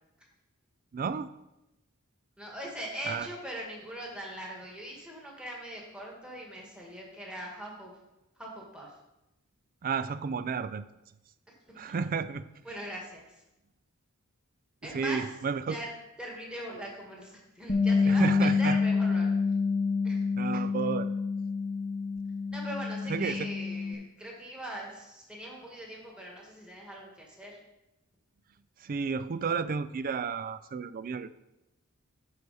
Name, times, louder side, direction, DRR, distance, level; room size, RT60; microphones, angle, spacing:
voice 1, 0.9-1.3 3.1-3.3 9.8-10.9 11.8-12.4 14.8-15.8 18.1-18.8 20.4-21.1 23.1-23.5 28.8-31.3, right 5 dB, 40° right, 15 dB, 0.4 m, -32 dB
voice 2, 2.4-7.9 8.4-8.9 11.7-11.9 12.6-13.4 14.8-15.2 15.7-15.9 16.2-19.3 20.0-20.2 22.5-27.6, equal, 5° right, -3 dB, 1.8 m, -41 dB
Bass guitar, 17.7-23.9, left 4 dB, 25° left, 0.8 m, -28 dB
11.5 x 4.8 x 4.1 m, 0.93 s
head